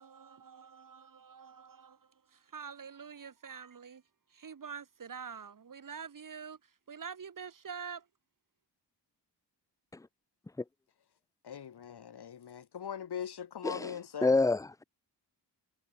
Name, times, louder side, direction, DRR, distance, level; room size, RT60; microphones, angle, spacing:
voice 1, 0.0-2.0 2.3-4.0 4.3-6.6 6.9-8.0, right 6 dB, 50° right, 1.4 m, -46 dB
voice 2, 11.4-14.3, left 8 dB, 65° left, 1.4 m, -41 dB
voice 3, 13.6-13.9 14.2-14.8, left 3 dB, 10° left, 0.4 m, -28 dB
wide cardioid pair, 100°, 42 cm